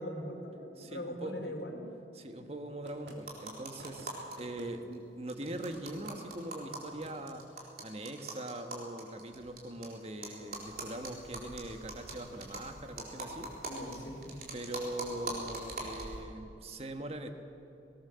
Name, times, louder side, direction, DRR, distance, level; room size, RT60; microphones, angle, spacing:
voice 1, 0.0-1.9 13.7-14.4, equal, 80° left, 2 dB, 3.3 m, -41 dB
voice 2, 0.8-1.6 2.1-13.5 14.5-17.3, right 1 dB, 35° right, 6 dB, 1.4 m, -42 dB
sound 1, 2.8-3.2 3.8-4.7 5.4-6.2 6.9-7.2, right 1 dB, 75° right, 2.9 m, -52 dB
sound 2, 3.2-4.4 4.6-4.7 4.9-5.0 5.3-9.9 10.2-16.2, right 2 dB, 55° right, 4.2 m, -42 dB
20.5 x 19.0 x 7.0 m, 2.9 s
head